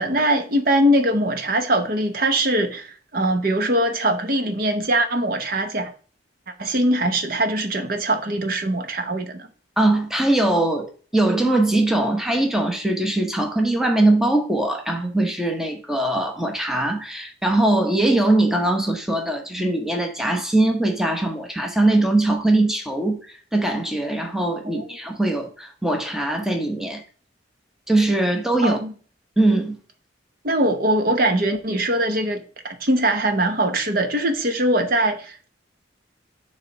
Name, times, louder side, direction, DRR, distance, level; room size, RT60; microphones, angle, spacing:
voice 1, 0.0-5.9 6.6-9.5 24.6-24.9 28.6-28.9 30.4-35.5, right 1 dB, 50° right, 0.8 m, -22 dB
voice 2, 9.8-23.2 23.5-27.0 27.9-28.8 29.4-29.8, right 2 dB, ahead, 0.9 m, -21 dB
6.8 x 3.2 x 5.6 m
head